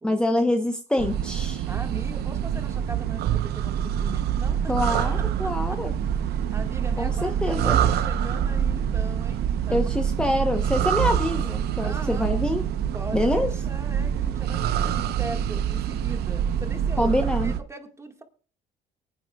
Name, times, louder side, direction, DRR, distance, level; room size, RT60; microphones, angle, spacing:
voice 1, 0.0-1.7 4.7-5.9 7.0-7.8 9.7-12.6 13.1-13.5 17.0-17.5, left 1 dB, 5° left, 4 dB, 0.9 m, -25 dB
sound 1, 1.0-17.6, right 9 dB, 75° right, 0.9 m, -26 dB
voice 2, 1.7-5.8 6.2-9.9 11.8-12.4 12.9-18.2, right 2 dB, 15° right, 5 dB, 1.8 m, -40 dB
24.0 x 9.3 x 2.4 m, 0.39 s
cardioid pair, 110°, 17 cm